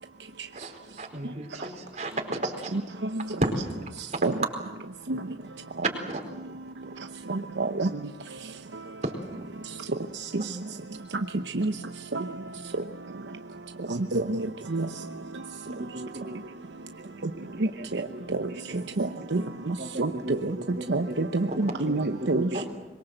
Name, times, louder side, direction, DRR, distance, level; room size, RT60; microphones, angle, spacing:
voice 1, 0.5-2.8 3.4-3.5 4.1-4.2 6.1-6.2 9.0-9.4 22.5-22.6, right 1 dB, 40° right, 3 dB, 4.5 m, -32 dB
voice 2, 7.3-7.9 11.5-11.7 12.1-12.2 14.1-14.4 14.7-14.9 19.0-19.4 19.7-20.1 20.4-20.5 20.9-22.5, right 2 dB, 85° right, 7 dB, 0.9 m, -27 dB
voice 3, 15.7-16.4 17.0-17.1 17.6-17.9 18.1-18.6 18.9-19.0 19.8-21.2 21.8-22.6, right 1 dB, 60° right, 3 dB, 3.2 m, -37 dB
25.0 x 22.5 x 8.0 m, 1.1 s
head